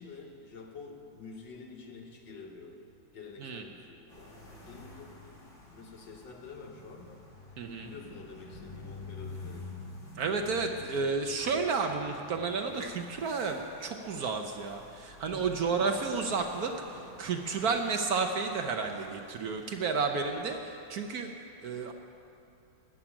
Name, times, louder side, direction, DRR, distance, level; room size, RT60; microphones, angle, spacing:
voice 1, 0.0-2.8 3.1-7.2 7.8-9.7 15.7-16.1, left 4 dB, 70° left, 3 dB, 1.9 m, -48 dB
sound 1, 4.1-20.6, left 3 dB, 40° left, 2.2 m, -50 dB
voice 2, 7.6-7.9 10.2-21.3 21.6-21.9, right 4 dB, 60° right, 4 dB, 1.1 m, -31 dB
Thunder, 15.1-19.2, equal, 25° left, 3.6 m, -52 dB
13.0 x 7.4 x 10.0 m, 2.7 s
omnidirectional pair, 2.1 m